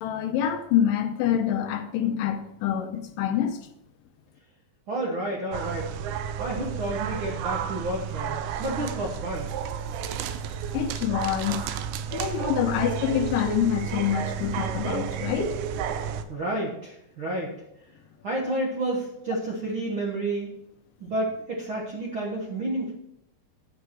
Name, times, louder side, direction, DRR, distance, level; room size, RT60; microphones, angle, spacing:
voice 1, 0.0-3.7 10.7-11.6 12.1-15.6, left 10 dB, 80° left, 2.1 m, -26 dB
voice 2, 4.9-5.9 6.4-9.5 16.3-17.6 18.2-20.5 21.0-22.9, right 1 dB, 60° right, 1.3 m, -30 dB
sound 1, 5.5-16.2, right 8 dB, 80° right, 2.2 m, -32 dB
9.6 x 7.8 x 4.5 m
omnidirectional pair, 4.2 m